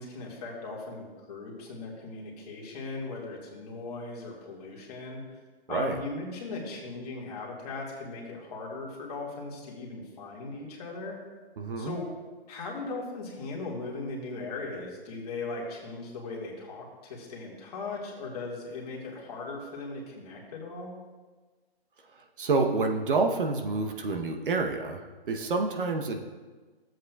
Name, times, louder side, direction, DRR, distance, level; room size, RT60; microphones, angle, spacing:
voice 1, 0.0-5.2 5.7-11.2 11.8-12.1 12.5-21.0, left 3 dB, 40° left, -2 dB, 1.9 m, -38 dB
voice 2, 5.7-6.0 11.6-11.9 22.1-26.2, right 3 dB, 55° right, 4 dB, 0.9 m, -28 dB
13.5 x 7.7 x 2.3 m, 1.3 s
hypercardioid pair, 155°, 31 cm